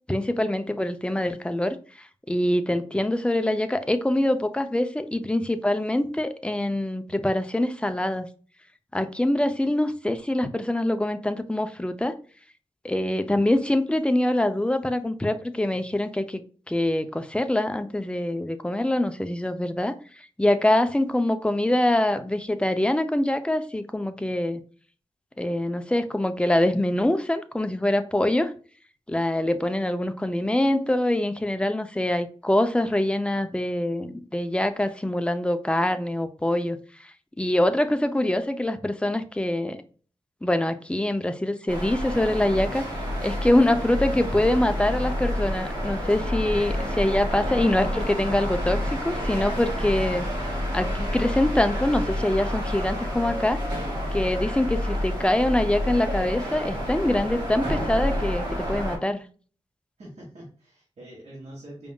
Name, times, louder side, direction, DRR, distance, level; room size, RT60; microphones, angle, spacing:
voice 1, 0.1-8.3 8.9-12.1 12.8-16.4 16.7-24.6 25.4-28.5 29.1-39.8 40.4-42.8 43.2-50.3 50.7-53.6 54.1-59.3, left 1 dB, 10° left, 0.5 m, -24 dB
sound 1, 41.7-59.0, equal, 40° right, 1.9 m, -29 dB
voice 2, 60.0-61.9, right 1 dB, 80° right, 1.6 m, -44 dB
4.9 x 3.6 x 2.3 m
wide cardioid pair, 105°, 11 cm